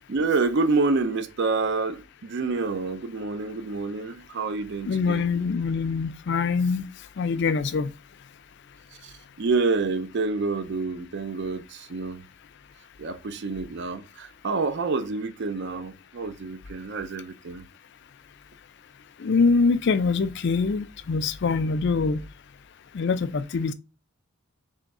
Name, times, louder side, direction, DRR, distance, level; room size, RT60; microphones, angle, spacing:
voice 1, 0.1-5.3 9.0-12.2 13.0-17.6, right 3 dB, 50° right, 0.4 m, -28 dB
voice 2, 4.8-6.9 7.2-7.9 19.2-22.2 22.9-23.7, left 4 dB, 50° left, 0.4 m, -24 dB
3.4 x 3.4 x 4.1 m
head